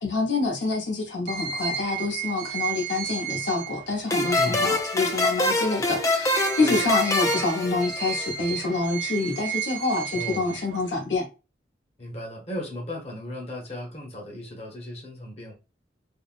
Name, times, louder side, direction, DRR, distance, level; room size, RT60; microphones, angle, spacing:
voice 1, 0.0-11.3, left 3 dB, 85° left, 0.9 m, -27 dB
sound 1, 1.3-5.7 6.1-11.0, right 7 dB, 75° right, 0.5 m, -34 dB
sound 2, 4.1-8.5, left 2 dB, 15° left, 0.3 m, -25 dB
voice 2, 10.1-10.5 12.0-15.5, left 1 dB, 35° left, 0.8 m, -36 dB
3.6 x 2.1 x 2.4 m
head